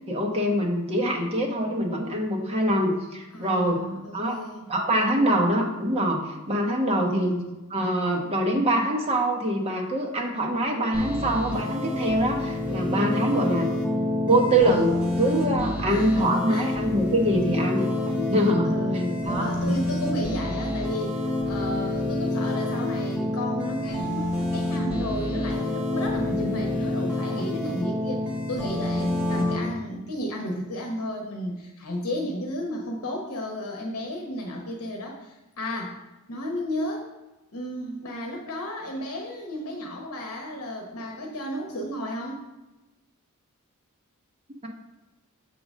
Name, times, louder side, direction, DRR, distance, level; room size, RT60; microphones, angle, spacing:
voice 1, 0.1-3.8 4.1-4.4 4.7-6.2 6.5-7.3 7.7-13.7 14.3-17.9 18.1-18.7 19.2-19.5, right 1 dB, 30° right, 0 dB, 1.1 m, -24 dB
voice 2, 3.3-4.7 6.8-7.5 13.3-14.2 15.9-16.9 18.6-36.0 36.3-37.1 37.5-42.4, equal, 75° left, 0 dB, 0.9 m, -33 dB
sound 1, 10.9-29.6, left 1 dB, 5° right, 1.6 m, -28 dB
6.9 x 3.8 x 6.2 m, 1.1 s
head